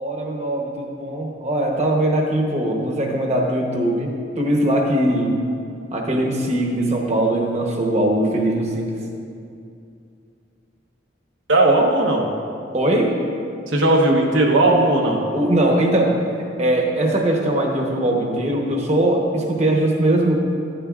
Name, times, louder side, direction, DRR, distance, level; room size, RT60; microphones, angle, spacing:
voice 1, 0.0-5.4 5.9-9.0 12.7-13.2 15.3-16.2 16.6-20.3, right 1 dB, 35° right, 0 dB, 1.0 m, -20 dB
voice 2, 11.5-12.3 13.7-15.2, right 2 dB, 85° right, 0 dB, 1.0 m, -16 dB
10.0 x 9.7 x 2.4 m, 2.5 s
head